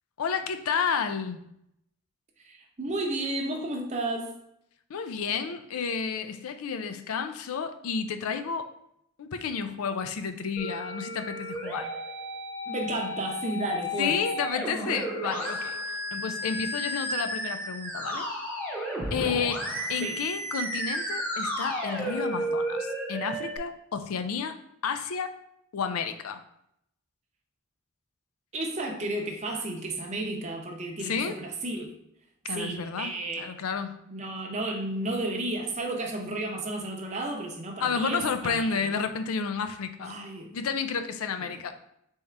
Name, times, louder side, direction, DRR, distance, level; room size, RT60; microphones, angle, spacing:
voice 1, 0.2-1.5 4.9-8.7 9.2-11.9 14.0-15.8 16.1-18.3 19.1-24.6 24.8-25.4 25.7-26.4 31.0-31.4 32.4-34.0 37.8-40.2 40.5-41.7, left 6 dB, 80° left, 9 dB, 0.4 m, -31 dB
voice 2, 2.4-4.3 12.7-14.2 20.0-20.2 28.5-31.9 32.5-33.5 34.1-38.9 40.0-40.5 41.4-41.6, right 2 dB, 30° right, 1 dB, 0.7 m, -32 dB
Musical instrument, 10.6-23.6, equal, 10° left, 0.8 m, -33 dB
4.1 x 3.6 x 3.3 m, 0.75 s
head